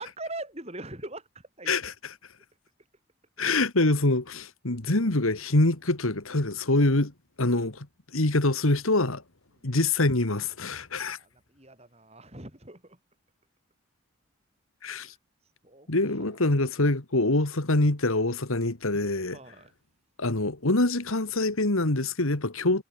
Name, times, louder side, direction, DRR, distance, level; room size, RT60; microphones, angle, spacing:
voice 1, 0.0-1.7 7.6-7.7 9.6-9.7 11.0-13.0 14.9-15.2 15.6-15.9 16.2-16.4 19.3-19.7, right 2 dB, 30° right, 6.6 m, -42 dB
voice 2, 1.7-2.1 3.4-7.1 7.4-7.9 8.1-9.2 9.6-11.2 14.8-15.1 15.9-19.4 20.2-22.8, left 2 dB, 80° left, 2.1 m, -25 dB
head